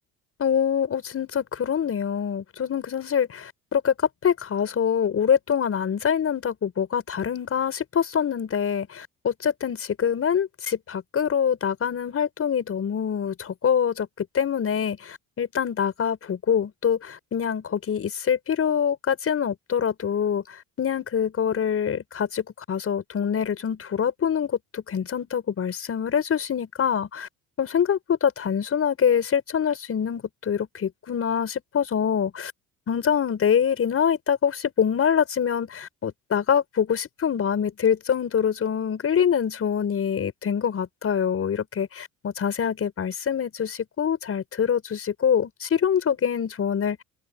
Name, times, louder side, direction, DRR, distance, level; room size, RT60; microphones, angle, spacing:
voice 1, 0.4-4.0 4.2-27.3 27.6-32.5 32.9-47.0, left 8 dB, 45° left, 5.6 m, -25 dB
open air
supercardioid pair, 90°, 33 cm